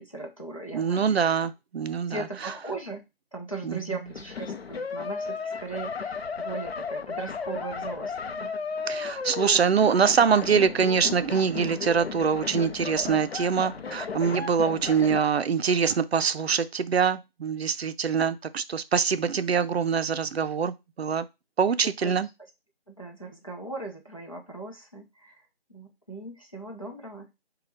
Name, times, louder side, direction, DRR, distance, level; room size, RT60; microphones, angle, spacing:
voice 1, 0.0-1.3 2.1-3.0 3.3-8.5 21.8-22.3 22.9-25.4 25.7-27.3, right 3 dB, 35° left, 0.6 m, -38 dB
voice 2, 0.7-2.2 3.6-3.8 8.9-21.3 21.6-22.3, right 6 dB, 90° right, 0.5 m, -24 dB
sound 1, 4.1-15.3, left 5 dB, 80° left, 0.6 m, -34 dB
3.3 x 2.3 x 4.0 m
figure-of-eight pair, 180°, 30 cm